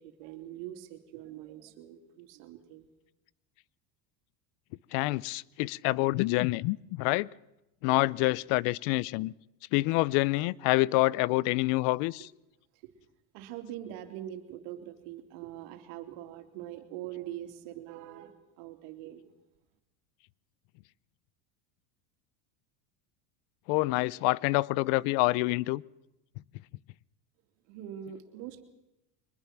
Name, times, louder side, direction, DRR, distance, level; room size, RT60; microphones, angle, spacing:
voice 1, 0.0-2.9 13.3-19.3 27.7-28.6, right 12 dB, 70° right, 3.0 m, -43 dB
voice 2, 4.9-7.3 7.8-9.3 9.7-12.3 23.7-25.8, left 20 dB, 60° left, 0.6 m, -27 dB
23.5 x 21.0 x 6.0 m
supercardioid pair, 130°, 49 cm